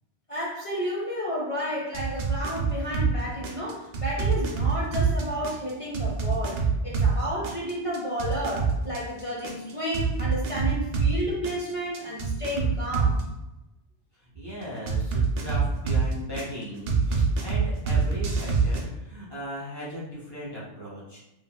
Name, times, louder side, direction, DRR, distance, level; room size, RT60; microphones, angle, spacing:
voice 1, 0.3-13.2, equal, 50° left, -5 dB, 0.4 m, -31 dB
sound 1, 1.9-3.1 3.4-7.1 7.4-11.1 11.4-13.2 14.9-16.4 16.9-18.8, right 5 dB, 90° right, 0.9 m, -25 dB
voice 2, 14.3-21.2, equal, 30° right, -7 dB, 0.5 m, -37 dB
2.9 x 2.7 x 2.2 m, 0.97 s
omnidirectional pair, 1.2 m